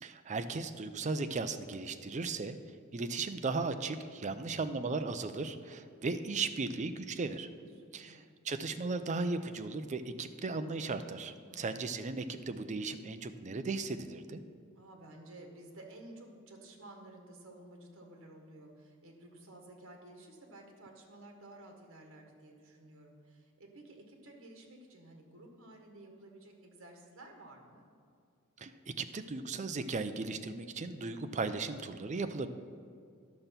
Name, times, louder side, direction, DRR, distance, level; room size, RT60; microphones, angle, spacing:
voice 1, 0.0-2.6 2.9-7.5 7.9-14.4 28.6-32.5, right 3 dB, 35° right, 9 dB, 0.5 m, -36 dB
voice 2, 4.2-4.7 7.5-8.2 11.5-11.9 14.7-27.8, right 1 dB, 65° right, 2 dB, 1.6 m, -53 dB
11.0 x 6.7 x 5.8 m, 2.3 s
head